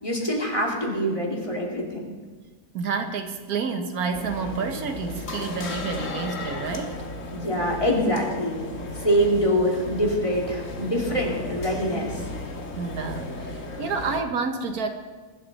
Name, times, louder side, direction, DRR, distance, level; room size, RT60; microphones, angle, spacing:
voice 1, 0.0-2.1 7.3-8.6 9.0-12.2, equal, 20° left, -1 dB, 2.7 m, -24 dB
voice 2, 2.7-7.0 12.8-14.9, right 5 dB, 80° right, 6 dB, 1.6 m, -29 dB
sound 1, 4.1-14.2, left 2 dB, 60° left, 1.7 m, -35 dB
22.0 x 11.5 x 4.1 m, 1.4 s
omnidirectional pair, 1.6 m